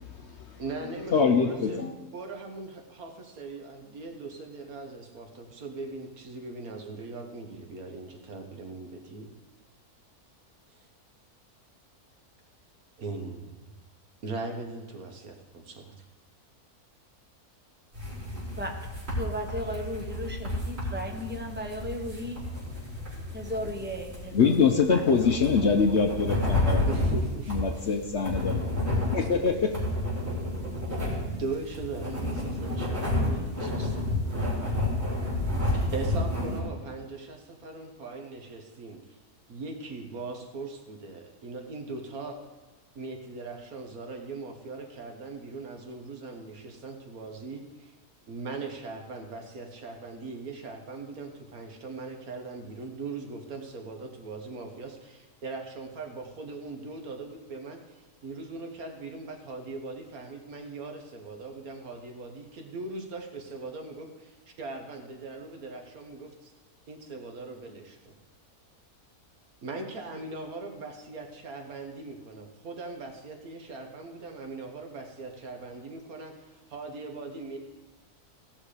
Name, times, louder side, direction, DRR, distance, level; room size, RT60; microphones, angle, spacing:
voice 1, 0.6-9.3 10.7-10.9 13.0-13.6 14.2-16.0 26.9-27.6 29.2-29.3 31.2-34.0 35.9-39.1 39.5-42.4 42.9-47.9 48.3-66.5 66.9-68.2 69.6-77.6, right 3 dB, 70° right, 3 dB, 1.7 m, -40 dB
voice 2, 1.1-1.9 23.2-23.3 24.3-26.8 27.5-28.6 29.1-29.8, left 5 dB, 55° left, 4 dB, 0.9 m, -24 dB
sound 1, 17.9-36.6, left 1 dB, 40° right, 4.6 m, -31 dB
voice 3, 19.2-22.4 23.3-24.5 24.9-25.0, equal, 10° right, 2 dB, 1.1 m, -35 dB
16.5 x 6.3 x 4.9 m, 1.2 s
omnidirectional pair, 1.6 m